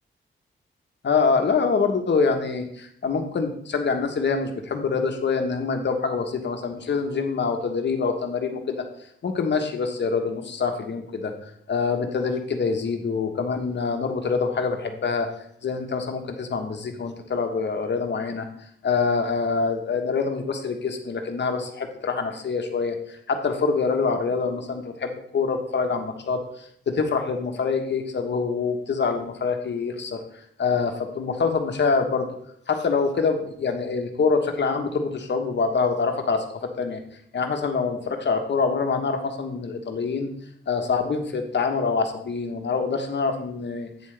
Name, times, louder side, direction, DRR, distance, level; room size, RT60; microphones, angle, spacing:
voice 1, 1.0-15.3 15.6-32.3 32.7-37.0 37.3-40.3 40.7-43.9, left 5 dB, 55° left, 5 dB, 1.2 m, -25 dB
8.2 x 7.3 x 3.4 m, 0.68 s
cardioid pair, 100°, 21 cm